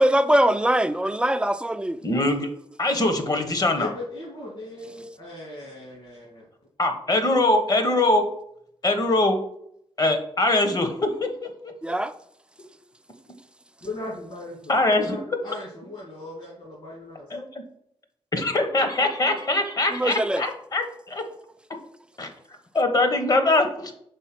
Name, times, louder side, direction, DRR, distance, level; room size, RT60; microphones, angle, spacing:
voice 1, 0.0-2.0 11.8-12.1 19.9-20.4, right 1 dB, 10° right, 0.4 m, -22 dB
voice 2, 2.0-2.5 2.8-3.9 6.8-8.3 8.8-9.4 10.0-11.5 14.7-15.2 17.3-17.6 18.3-21.2 22.2-22.3 22.7-23.9, left 2 dB, 40° left, 1.1 m, -22 dB
voice 3, 3.7-6.5 13.8-17.3, left 2 dB, 60° left, 2.5 m, -38 dB
5.4 x 4.1 x 5.9 m
cardioid pair, 90°, 10 cm